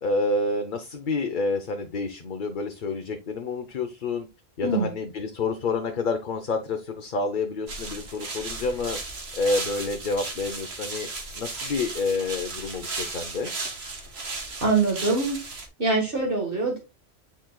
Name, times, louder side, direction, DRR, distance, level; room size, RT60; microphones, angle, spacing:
voice 1, 0.0-4.3 4.6-9.0 9.3-11.1 11.4-13.5, left 3 dB, 50° left, 5 dB, 0.9 m, -28 dB
sound 1, 7.7-15.7, right 3 dB, 75° right, 1.7 m, -35 dB
voice 2, 14.6-15.4 15.8-16.8, right 3 dB, 55° right, 0 dB, 1.8 m, -24 dB
10.5 x 4.4 x 2.3 m, 0.25 s
omnidirectional pair, 1.1 m